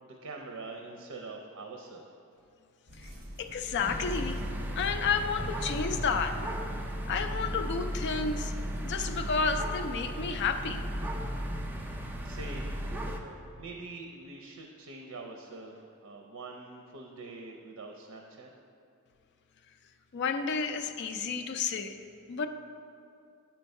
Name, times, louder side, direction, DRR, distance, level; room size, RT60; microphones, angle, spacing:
voice 1, 0.0-2.0 11.8-12.7 13.1-18.5, right 3 dB, 85° right, 2 dB, 0.6 m, -45 dB
sound 1, 2.9-11.1, equal, 45° right, 1.5 m, -53 dB
voice 2, 3.4-4.4 4.7-6.4 7.1-8.5 8.8-10.8 20.1-22.5, left 5 dB, 50° left, 7 dB, 0.4 m, -31 dB
sound 2, 3.8-13.2, equal, 10° right, 0.4 m, -35 dB
8.5 x 4.6 x 5.3 m, 2.5 s
head